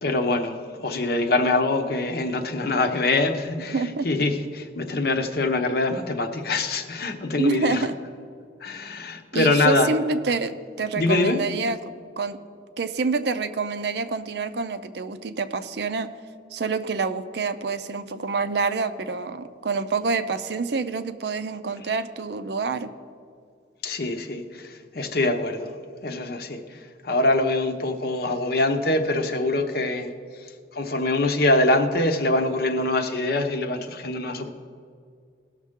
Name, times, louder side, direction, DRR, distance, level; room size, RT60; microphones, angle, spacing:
voice 1, 0.0-7.8 8.6-9.9 11.0-11.4 23.8-25.7 26.0-26.6 27.0-30.1 30.7-34.5, left 2 dB, 55° left, 6 dB, 0.8 m, -24 dB
voice 2, 3.7-4.1 7.4-7.9 9.3-11.8 12.2-12.4 12.8-16.1 16.5-22.9, right 4 dB, 60° right, 10 dB, 0.5 m, -27 dB
17.5 x 6.5 x 3.6 m, 2.2 s
head